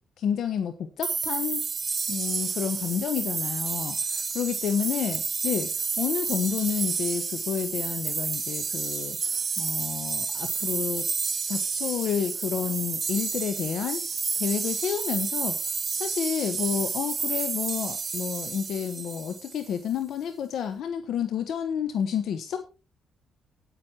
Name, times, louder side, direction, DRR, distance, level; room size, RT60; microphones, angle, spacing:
voice 1, 0.2-1.6 2.1-5.7 6.0-11.1 11.5-14.0 14.4-15.6 15.9-22.6, left 8 dB, 70° left, 10 dB, 1.0 m, -30 dB
sound 1, 1.0-19.7, right 5 dB, 35° right, 1.3 m, -30 dB
9.5 x 9.1 x 4.4 m, 0.31 s
cardioid pair, 90°, 0 cm